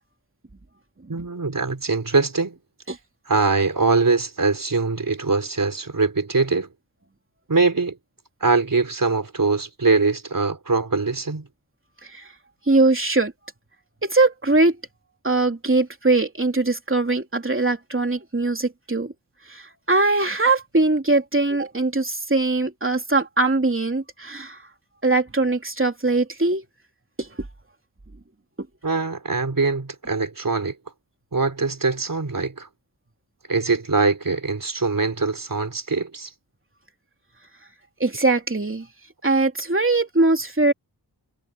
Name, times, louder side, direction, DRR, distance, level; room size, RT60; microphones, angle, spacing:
voice 1, 1.1-2.6 3.3-6.7 7.5-8.0 8.4-11.5 28.8-30.8 31.3-32.7 33.5-36.3, right 4 dB, 50° right, 3.8 m, -22 dB
voice 2, 12.7-13.3 14.0-14.8 15.2-19.1 19.5-24.6 25.0-26.6 27.2-27.3 38.0-38.9 39.2-40.7, right 3 dB, 30° right, 3.2 m, -21 dB
wide cardioid pair, 50°, 41 cm